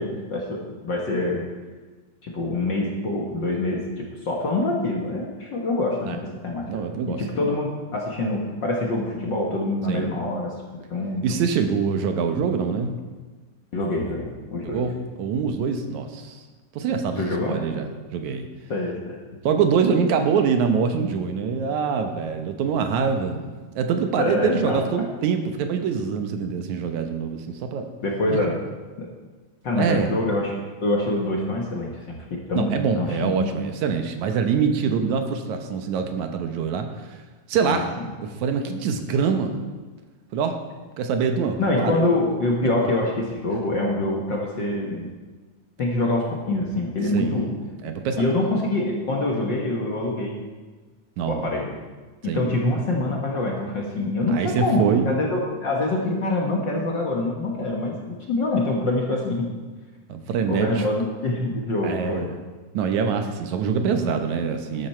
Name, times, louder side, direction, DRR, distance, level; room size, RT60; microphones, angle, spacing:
voice 1, 0.0-1.4 2.2-6.7 7.1-10.5 10.9-11.4 13.7-14.8 17.2-17.6 18.7-19.2 24.2-24.8 28.0-28.5 29.0-29.1 29.6-30.5 30.8-33.5 37.6-38.0 41.6-45.1 45.8-47.5 48.2-50.4 51.3-51.7 52.2-59.5 60.5-62.3, left 2 dB, 45° left, -1 dB, 1.7 m, -25 dB
voice 2, 6.7-7.2 9.9-10.2 11.2-12.9 14.6-16.4 16.8-18.5 19.4-23.5 23.8-27.9 28.3-28.4 29.8-30.1 32.5-37.2 37.5-37.9 38.2-39.6 40.3-40.6 41.0-42.0 47.1-48.2 51.2-51.5 52.2-52.5 54.3-55.1 60.1-60.9 61.8-62.3 62.7-64.9, right 6 dB, 75° right, 6 dB, 2.3 m, -24 dB
12.5 x 12.0 x 4.4 m, 1.3 s
omnidirectional pair, 3.5 m